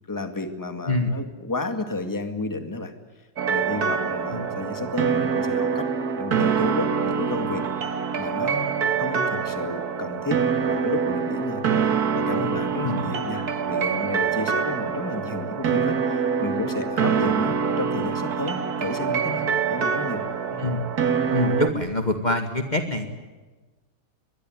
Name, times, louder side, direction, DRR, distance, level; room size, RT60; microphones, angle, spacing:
voice 1, 0.1-2.9 3.5-5.9 6.1-7.6 8.2-8.7 9.0-20.6, left 2 dB, 10° left, 7 dB, 2.1 m, -32 dB
sound 1, 3.4-21.7, right 6 dB, 75° right, 2.1 m, -25 dB
voice 2, 21.3-23.1, left 2 dB, 30° left, 5 dB, 2.0 m, -24 dB
22.5 x 22.5 x 9.4 m, 1.2 s
omnidirectional pair, 1.6 m